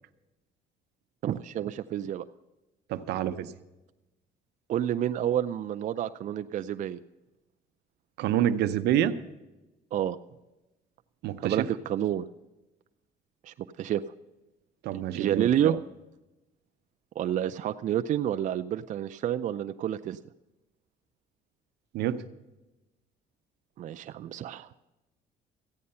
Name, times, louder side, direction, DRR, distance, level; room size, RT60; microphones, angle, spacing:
voice 1, 1.2-2.2 4.7-7.0 9.9-10.2 11.4-12.3 13.4-14.0 15.1-15.8 17.2-20.2 23.8-24.7, right 10 dB, 50° right, 9 dB, 0.4 m, -29 dB
voice 2, 2.9-3.5 8.2-9.2 11.2-11.7 14.8-15.8 21.9-22.2, right 11 dB, 80° right, 11 dB, 0.7 m, -27 dB
14.0 x 9.5 x 5.5 m, 1.0 s
cardioid pair, 110°, 17 cm